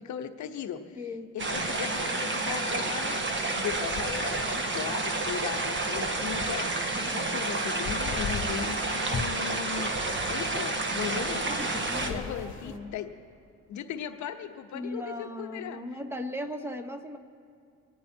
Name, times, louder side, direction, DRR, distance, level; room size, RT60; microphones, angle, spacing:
voice 1, 0.0-1.0 1.3-3.2 3.5-11.5 12.1-13.1 13.7-16.0, left 9 dB, 70° left, 7 dB, 0.9 m, -38 dB
voice 2, 1.0-1.3 11.4-12.9 14.7-17.2, left 1 dB, 10° right, 6 dB, 0.9 m, -38 dB
sound 1, 1.4-12.1, right 2 dB, 40° right, 1.4 m, -30 dB
sound 2, 3.7-6.8 7.1-8.8 9.1-12.8, left 5 dB, 45° left, 1.1 m, -40 dB
23.5 x 9.5 x 4.4 m, 2.4 s
cardioid pair, 90°, 30 cm